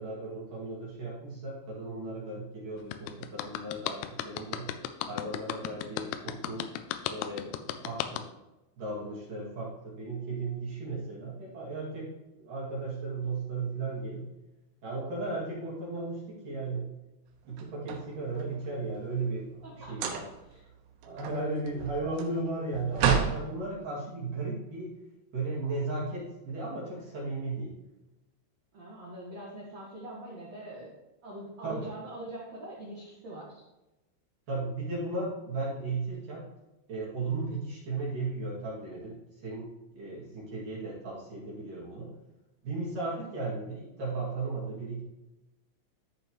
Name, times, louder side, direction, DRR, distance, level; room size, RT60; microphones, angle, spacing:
voice 1, 0.0-4.7 5.1-6.7 7.1-8.2 8.8-12.1 12.4-14.2 14.8-16.9 17.4-20.2 21.0-24.9 25.3-27.7 31.6-31.9 34.5-36.5 36.9-42.1 42.6-45.0, right 3 dB, 50° right, -7 dB, 3.4 m, -35 dB
sound 1, 2.9-8.2, left 12 dB, 85° left, 3.1 m, -34 dB
sound 2, 17.5-18.7 19.9-20.5 20.9-23.4, right 7 dB, 90° right, 3.8 m, -30 dB
voice 2, 19.6-20.2 20.5-20.6 21.0-21.3 28.7-30.9 31.2-33.6, right 1 dB, 75° right, -5 dB, 1.5 m, -43 dB
13.5 x 5.3 x 3.1 m, 1.0 s
omnidirectional pair, 5.8 m